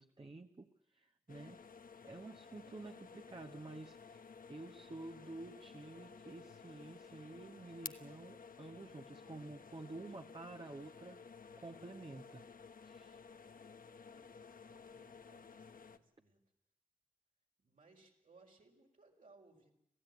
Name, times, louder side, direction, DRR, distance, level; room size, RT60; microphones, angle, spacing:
voice 1, 0.0-1.6 2.0-11.2 11.6-12.4 12.8-13.2, right 2 dB, 35° right, 5 dB, 1.2 m, -50 dB
sound 1, 1.3-16.0, left 5 dB, 75° left, 1.1 m, -54 dB
voice 2, 14.1-16.4 17.6-19.7, right 3 dB, 65° right, 0 dB, 4.6 m, -66 dB
27.0 x 15.5 x 9.3 m, 0.83 s
wide cardioid pair, 75°, 15 cm